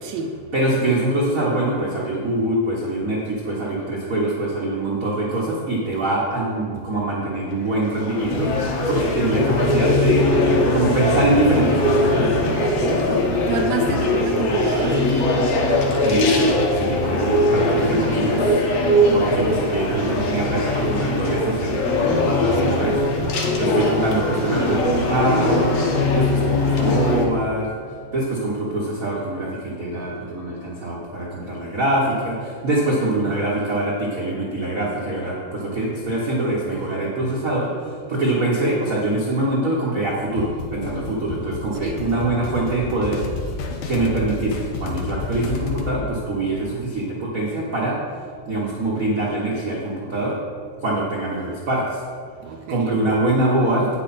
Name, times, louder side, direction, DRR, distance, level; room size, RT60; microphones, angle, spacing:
voice 1, 0.0-0.5 6.8-6.9 8.9-9.1 12.9-13.0 13.5-15.4 17.0-18.5 22.5-22.8 27.9-28.0 41.8-42.1 52.4-53.1, right 5 dB, 75° right, 5 dB, 1.6 m, -29 dB
voice 2, 0.5-10.2 10.7-12.6 12.8-13.2 16.0-18.5 19.1-21.8 22.5-23.0 23.3-25.7 26.1-27.7 28.1-43.3 43.9-48.0 48.5-50.4 50.8-52.0 52.7-53.9, right 2 dB, 60° right, -5 dB, 0.8 m, -24 dB
sound 1, 7.5-27.2, left 1 dB, 60° left, 2.0 m, -20 dB
sound 2, 40.4-46.0, left 4 dB, 85° left, 2.4 m, -31 dB
9.1 x 8.0 x 4.2 m, 2.1 s
omnidirectional pair, 3.5 m